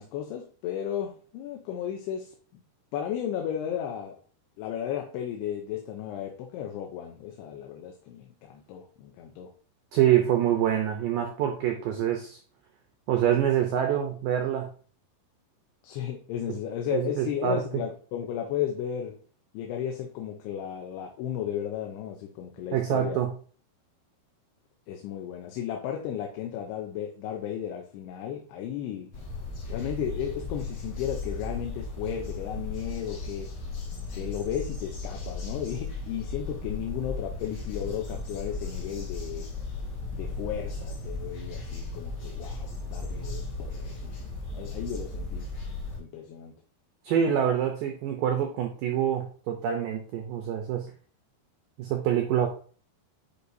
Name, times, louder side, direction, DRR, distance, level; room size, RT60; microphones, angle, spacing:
voice 1, 0.0-2.4 2.9-4.1 4.6-9.5 15.8-19.2 19.5-23.2 24.9-29.1 29.7-33.5 34.1-39.5 40.1-45.5 46.0-46.5, left 9 dB, 80° left, 3 dB, 2.7 m, -34 dB
voice 2, 9.9-12.4 13.1-14.7 16.9-17.6 22.7-23.3 47.0-50.9 51.8-52.5, right 10 dB, 90° right, 4 dB, 1.9 m, -26 dB
sound 1, 29.1-46.0, left 3 dB, 50° left, 3.9 m, -36 dB
9.8 x 4.8 x 2.7 m, 0.42 s
omnidirectional pair, 4.9 m